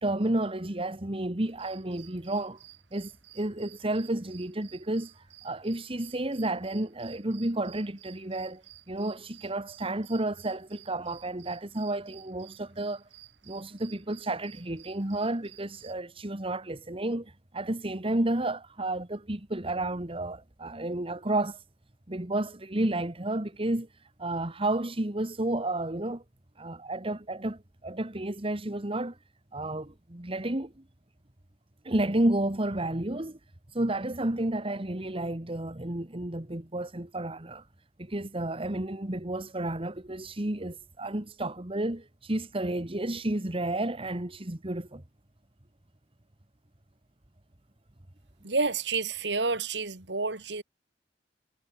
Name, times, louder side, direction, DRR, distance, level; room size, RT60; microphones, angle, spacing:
voice 1, 0.0-2.6 2.9-5.1 5.4-13.0 13.5-21.6 22.1-23.9 24.2-26.2 26.6-29.2 29.5-30.7 31.8-33.4 33.7-37.6 38.0-45.0, right 1 dB, 30° right, 1.7 m, -31 dB
sound 1, 1.5-15.9, right 15 dB, 85° right, 5.1 m, -54 dB
voice 2, 48.4-50.6, right 4 dB, 70° right, 2.7 m, -29 dB
head